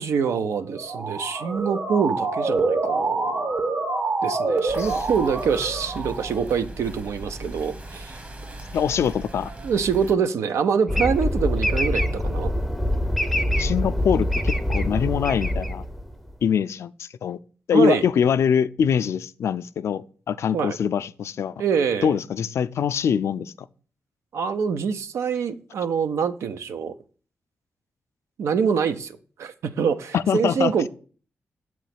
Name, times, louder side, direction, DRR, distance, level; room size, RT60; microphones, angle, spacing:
voice 1, 0.0-3.6 4.2-8.2 9.6-12.5 17.7-18.0 20.5-20.8 21.6-22.1 24.3-26.9 28.4-30.9, right 6 dB, 90° right, 0.5 m, -25 dB
Motor vehicle (road) / Siren, 0.6-6.5, right 3 dB, 55° right, 1.0 m, -26 dB
sound 1, 4.7-10.2, right 1 dB, 35° right, 1.0 m, -38 dB
voice 2, 8.7-9.5 13.6-15.8 16.4-17.4 17.7-21.6 22.0-23.7 30.1-30.9, left 7 dB, 75° left, 0.3 m, -23 dB
sound 2, 10.9-16.3, left 1 dB, ahead, 0.5 m, -24 dB
6.9 x 3.1 x 5.7 m
cardioid pair, 75°, 5 cm